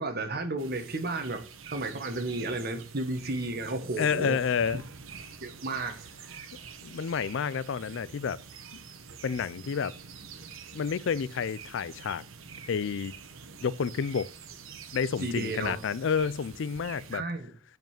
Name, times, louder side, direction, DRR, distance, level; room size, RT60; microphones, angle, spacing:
voice 1, 0.0-4.4 4.7-4.8 5.4-6.5 15.2-15.8 17.1-17.5, right 2 dB, 50° right, 1.4 m, -33 dB
sound 1, 0.6-17.2, right 6 dB, 80° right, 1.2 m, -47 dB
voice 2, 4.0-4.8 6.8-8.4 9.2-9.9 10.7-12.2 12.7-13.1 13.6-14.3 14.9-17.2, left 6 dB, 65° left, 0.4 m, -29 dB
7.2 x 5.3 x 7.4 m
head